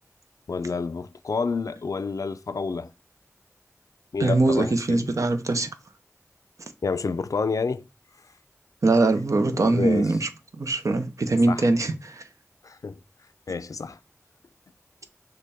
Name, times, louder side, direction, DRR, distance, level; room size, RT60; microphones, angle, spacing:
voice 1, 0.5-2.9 4.1-5.1 6.8-7.8 9.5-10.1 11.5-11.7 12.6-13.0 13.5-14.0, left 4 dB, 80° left, 0.4 m, -29 dB
voice 2, 4.2-5.7 8.8-10.3 10.6-12.2, right 2 dB, 70° right, 0.6 m, -22 dB
6.5 x 2.2 x 3.5 m
wide cardioid pair, 60°, 6 cm